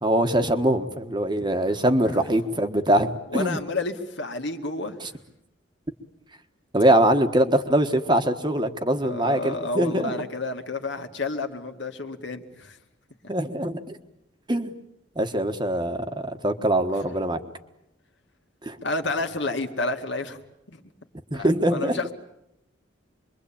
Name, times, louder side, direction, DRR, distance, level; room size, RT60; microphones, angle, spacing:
voice 1, 0.0-3.6 5.0-5.1 6.7-10.2 13.3-14.0 14.5-14.7 15.2-17.4 18.6-18.8 21.3-22.1, right 1 dB, 25° right, 7 dB, 1.5 m, -23 dB
voice 2, 3.3-5.1 9.0-12.8 18.8-20.4 20.7-20.8 21.3-22.1, left 3 dB, 60° left, 5 dB, 2.2 m, -30 dB
26.5 x 23.0 x 8.8 m, 0.82 s
head